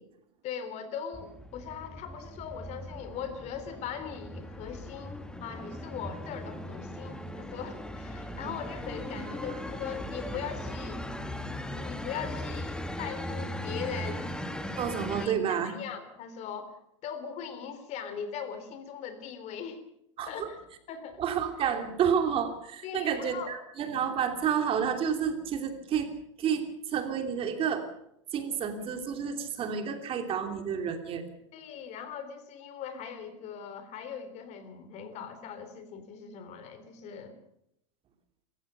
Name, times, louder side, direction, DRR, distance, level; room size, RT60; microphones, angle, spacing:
voice 1, 0.4-11.0 11.8-14.3 15.2-19.8 20.3-20.6 20.9-21.2 22.8-23.5 31.5-37.4, left 7 dB, 45° left, 10 dB, 3.6 m, -40 dB
sound 1, 1.1-15.3, left 1 dB, 5° left, 1.9 m, -38 dB
voice 2, 14.8-15.8 20.2-20.5 21.2-26.1 26.4-27.8 28.3-31.2, right 7 dB, 35° right, 6 dB, 3.0 m, -30 dB
26.5 x 15.0 x 6.8 m, 0.75 s
supercardioid pair, 120°, 16 cm